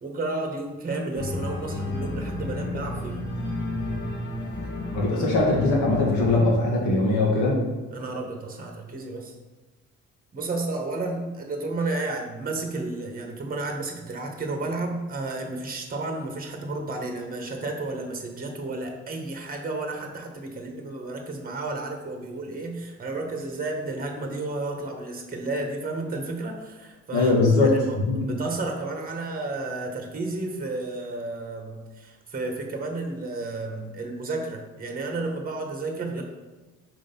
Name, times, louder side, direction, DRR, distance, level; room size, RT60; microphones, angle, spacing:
voice 1, 0.0-3.2 7.9-9.3 10.3-36.2, right 2 dB, 30° right, 3 dB, 1.1 m, -32 dB
Organ, 1.1-6.5, left 2 dB, 35° left, 1.4 m, -31 dB
voice 2, 4.9-7.6 27.1-28.3, left 2 dB, 75° left, -3 dB, 1.9 m, -21 dB
5.1 x 3.8 x 5.3 m, 1.2 s
cardioid pair, 90°, 30 cm